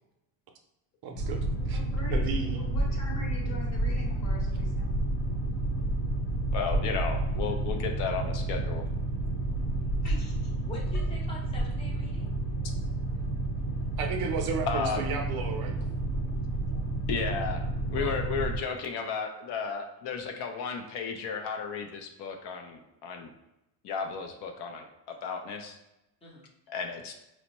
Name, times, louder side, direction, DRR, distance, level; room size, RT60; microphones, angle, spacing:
voice 1, 1.0-1.8 2.1-2.6 14.0-15.8, right 4 dB, 50° right, 4 dB, 0.5 m, -33 dB
Boat Water vehicle, 1.2-18.6, right 2 dB, 85° left, 1.0 m, -30 dB
voice 2, 1.7-4.9 10.0-10.5, equal, 35° left, -2 dB, 1.0 m, -44 dB
voice 3, 6.5-8.9 14.7-15.0 15.8-15.9 16.3-16.4 17.1-17.6 17.9-23.3 23.8-25.8 26.7-27.1, left 5 dB, 60° left, 4 dB, 0.6 m, -34 dB
voice 4, 10.7-12.3 17.9-18.3 26.2-26.5, left 2 dB, 15° left, -3 dB, 0.6 m, -44 dB
4.3 x 2.1 x 2.9 m, 0.87 s
cardioid pair, 140°, 46 cm